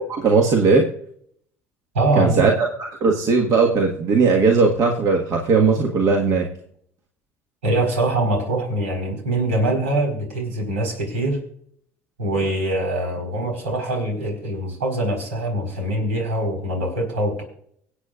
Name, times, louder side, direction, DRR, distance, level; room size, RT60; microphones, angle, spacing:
voice 1, 0.1-0.8 2.2-6.5, right 4 dB, 55° right, 1 dB, 1.7 m, -18 dB
voice 2, 1.9-2.5 7.6-11.4 12.2-17.4, right 1 dB, 85° right, 1 dB, 4.5 m, -23 dB
24.5 x 8.4 x 2.5 m, 0.64 s
hypercardioid pair, 65°, 7 cm